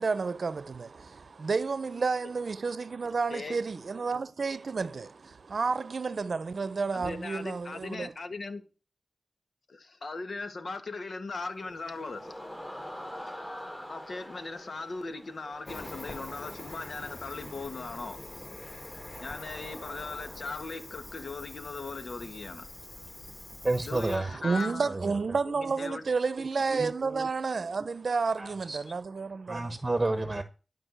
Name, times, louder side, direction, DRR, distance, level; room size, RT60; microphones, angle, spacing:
voice 1, 0.0-8.1 24.2-29.8, right 4 dB, 70° right, 0.7 m, -31 dB
voice 2, 6.9-8.6 9.7-12.3 13.9-18.2 19.2-22.6 23.8-26.0 28.8-28.9, left 3 dB, 70° left, 1.9 m, -39 dB
sound 1, 11.4-16.2, equal, 15° left, 7.2 m, -44 dB
Cricket, 15.6-24.2, left 1 dB, 35° left, 2.6 m, -44 dB
voice 3, 23.6-24.3 24.8-25.0 28.4-28.8 29.5-30.4, right 2 dB, 30° right, 1.1 m, -29 dB
12.5 x 5.3 x 7.9 m
wide cardioid pair, 85°, 0 cm